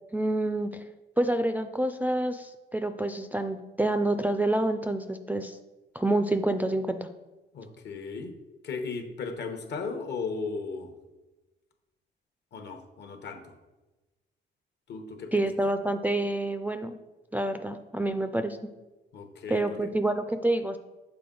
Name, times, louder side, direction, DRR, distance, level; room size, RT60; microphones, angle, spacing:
voice 1, 0.1-0.8 1.2-5.6 5.9-7.1 15.3-17.0 17.3-18.6 19.5-20.8, right 1 dB, 10° right, 7 dB, 0.3 m, -28 dB
voice 2, 7.5-8.3 8.6-10.9 12.5-13.5 14.9-15.4 19.1-19.9, left 4 dB, 60° left, 6 dB, 0.9 m, -36 dB
6.8 x 4.5 x 3.8 m, 1.1 s
cardioid pair, 90°, 20 cm